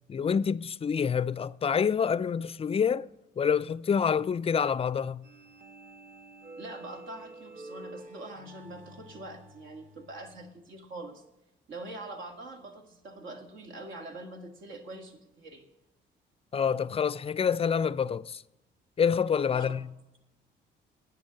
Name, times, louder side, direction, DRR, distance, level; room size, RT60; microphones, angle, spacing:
voice 1, 0.1-3.1 3.4-5.2 16.5-18.4 19.0-19.9, left 7 dB, 30° left, 0.4 m, -27 dB
sound 1, 5.2-10.5, right 2 dB, 40° right, 1.2 m, -49 dB
voice 2, 6.6-11.2 11.7-15.6 19.5-19.7, right 2 dB, 75° right, 1.9 m, -44 dB
9.2 x 7.7 x 7.4 m
cardioid pair, 90°, 20 cm